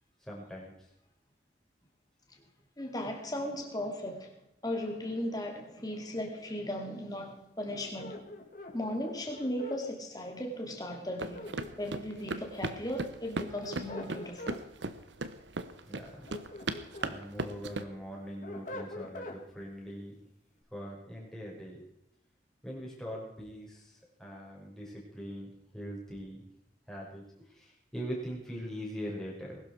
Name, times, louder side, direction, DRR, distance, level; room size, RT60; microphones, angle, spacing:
voice 1, 0.2-0.7 15.9-16.3 17.0-20.2 20.7-21.8 22.6-26.5 26.9-27.2 27.5-29.6, equal, 5° left, -4 dB, 5.3 m, -42 dB
voice 2, 2.8-4.3 4.6-8.3 8.7-11.5 11.8-14.6, left 1 dB, 20° left, 2 dB, 2.8 m, -37 dB
sound 1, 7.7-9.8 11.1-12.2 13.4-14.6 16.0-17.2 17.6-19.4, left 1 dB, 45° left, 2.6 m, -44 dB
sound 2, 11.2-17.8, right 2 dB, 90° right, 1.1 m, -37 dB
21.0 x 12.0 x 4.7 m, 0.79 s
head